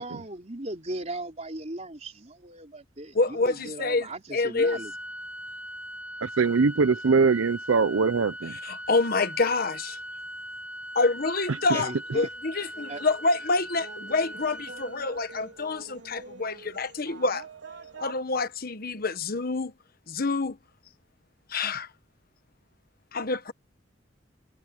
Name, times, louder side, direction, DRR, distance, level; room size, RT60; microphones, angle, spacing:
voice 1, 0.0-4.9 11.7-12.3 12.9-13.0, right 2 dB, 35° right, 4.1 m, -37 dB
voice 2, 3.1-4.8 8.6-10.0 10.9-17.4 18.0-19.7 20.1-20.6 21.5-21.9 23.1-23.5, left 3 dB, 50° left, 1.2 m, -27 dB
Organ, 4.6-15.6, equal, 5° right, 6.6 m, -40 dB
voice 3, 6.2-8.5, right 4 dB, 90° right, 0.6 m, -22 dB
sound 1, 12.7-18.2, right 3 dB, 65° right, 3.5 m, -46 dB
head